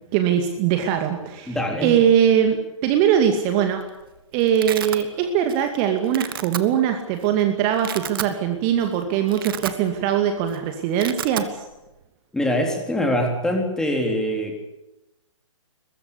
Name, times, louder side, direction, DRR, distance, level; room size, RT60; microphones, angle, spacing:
voice 1, 0.1-1.6 1.8-3.8 4.3-11.6, right 9 dB, 25° right, 6 dB, 2.3 m, -21 dB
voice 2, 1.5-1.9 12.3-14.6, left 1 dB, 5° left, 3 dB, 3.7 m, -23 dB
Domestic sounds home sounds, 3.5-3.9 4.2-5.0 5.5-5.7 6.0-6.6 7.2-7.3 7.7-8.3 8.8-8.9 9.2-10.1 10.4-10.6 10.8-11.5, right 10 dB, 40° right, 1.8 m, -31 dB
22.5 x 21.5 x 8.4 m, 0.95 s
figure-of-eight pair, 125°, 17 cm